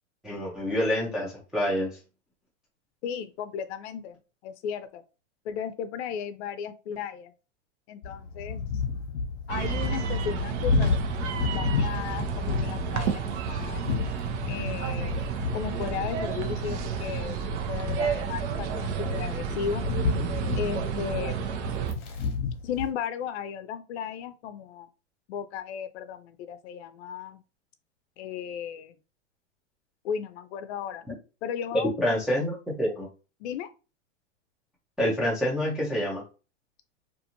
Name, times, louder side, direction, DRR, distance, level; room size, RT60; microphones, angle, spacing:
voice 1, 0.2-2.0 31.1-31.2 32.0-33.1 35.0-36.2, equal, ahead, -5 dB, 0.3 m, -27 dB
voice 2, 3.0-4.2 4.4-5.0 5.5-7.3 7.9-8.8 9.5-11.0 11.5-14.0 14.5-15.2 15.5-19.8 20.6-21.5 22.6-24.9 25.3-27.4 28.2-29.0 30.0-31.1 31.4-32.1 33.4-33.7, left 8 dB, 65° left, 11 dB, 0.5 m, -35 dB
sound 1, 8.0-22.9, left 5 dB, 40° left, 0.8 m, -32 dB
sound 2, 9.5-21.9, right 6 dB, 65° right, 0.8 m, -31 dB
2.5 x 2.5 x 2.8 m, 0.33 s
hypercardioid pair, 130°, 37 cm